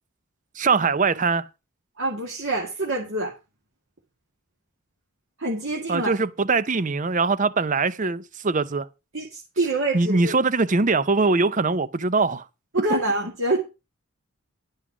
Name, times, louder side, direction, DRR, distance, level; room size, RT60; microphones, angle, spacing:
voice 1, 0.6-1.4 5.9-8.9 9.9-12.4, right 4 dB, 35° right, 0.6 m, -22 dB
voice 2, 2.0-3.3 5.4-6.1 9.1-10.3 12.7-13.6, right 2 dB, 60° right, 2.1 m, -26 dB
11.0 x 5.6 x 6.1 m
head